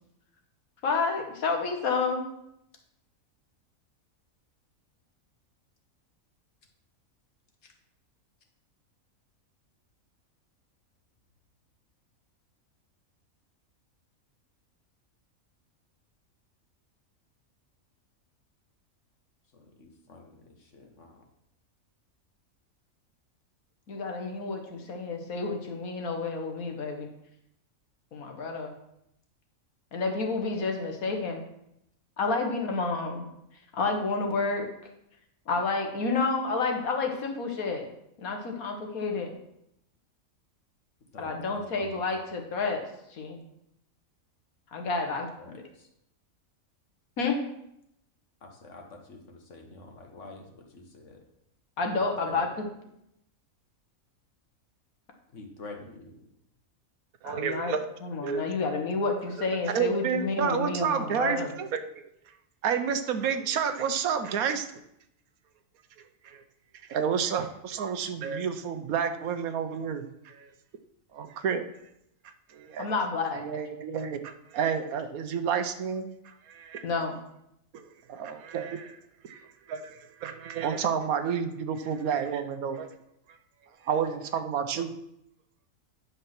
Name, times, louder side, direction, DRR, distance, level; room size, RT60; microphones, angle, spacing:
voice 1, 0.8-2.2 23.9-27.1 28.1-28.7 29.9-31.4 32.2-33.3 33.7-34.7 35.5-37.8 38.2-39.3 41.2-42.8 43.1-43.4 44.7-45.6 47.2-47.4 51.8-52.7 57.3-57.7 58.0-61.5 72.8-73.4 76.8-77.2, left 4 dB, 80° left, 3 dB, 1.9 m, -30 dB
voice 2, 19.5-21.3 41.1-42.2 45.0-45.9 48.4-51.2 51.9-52.4 55.3-56.3, left 3 dB, 60° left, 3 dB, 1.7 m, -48 dB
voice 3, 57.2-57.8 58.2-58.5 59.7-62.0 62.6-64.7 66.2-66.4 66.9-70.5 71.1-71.7 72.5-72.9 73.3-76.9 77.7-79.0 79.2-82.9 83.8-84.9, right 7 dB, 80° right, 9 dB, 1.3 m, -30 dB
9.8 x 5.7 x 5.9 m, 0.81 s
omnidirectional pair, 1.5 m